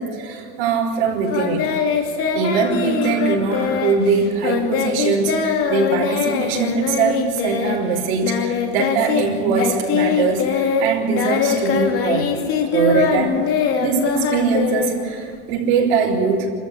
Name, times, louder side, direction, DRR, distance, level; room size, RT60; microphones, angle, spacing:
voice 1, 0.0-1.7 2.3-12.3 12.7-13.4 13.8-16.5, right 5 dB, 70° right, -1 dB, 5.4 m, -21 dB
Singing, 1.3-9.3 9.5-15.4, left 6 dB, 40° left, 3.1 m, -22 dB
26.5 x 14.0 x 8.6 m, 2.3 s
supercardioid pair, 145°, 33 cm